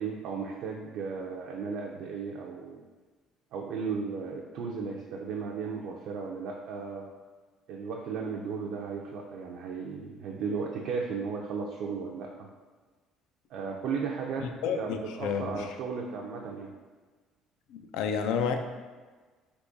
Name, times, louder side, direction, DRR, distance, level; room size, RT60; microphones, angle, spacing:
voice 1, 0.0-2.8 3.5-7.1 7.7-12.5 13.5-14.5 14.8-16.7, right 5 dB, 65° right, 0 dB, 0.3 m, -35 dB
voice 2, 14.4-15.7 17.7-18.6, left 6 dB, 85° left, 6 dB, 0.3 m, -31 dB
3.5 x 2.9 x 2.6 m, 1.4 s
cardioid pair, 145°, 0 cm